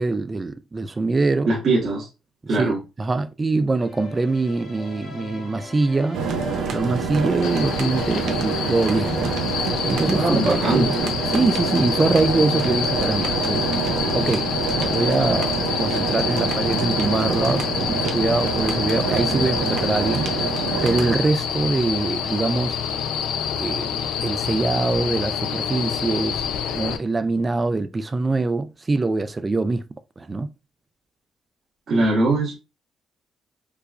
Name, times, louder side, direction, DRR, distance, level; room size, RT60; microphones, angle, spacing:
voice 1, 0.0-1.5 2.5-6.2 6.7-13.7 14.1-14.5 14.8-20.3 20.8-22.8 23.6-23.9 24.2-26.4 26.7-29.8 30.2-30.5, right 3 dB, 25° right, 0.3 m, -23 dB
voice 2, 1.4-2.1 2.5-2.8 10.2-10.9 31.9-32.5, right 2 dB, 55° right, 1.2 m, -21 dB
sound 1, 3.8-13.0, left 3 dB, 60° left, 1.7 m, -40 dB
sound 2, 6.1-21.2, right 5 dB, 75° right, 0.6 m, -26 dB
sound 3, 7.4-27.0, left 7 dB, 85° left, 0.4 m, -27 dB
4.8 x 2.3 x 2.4 m
cardioid pair, 90°, 0 cm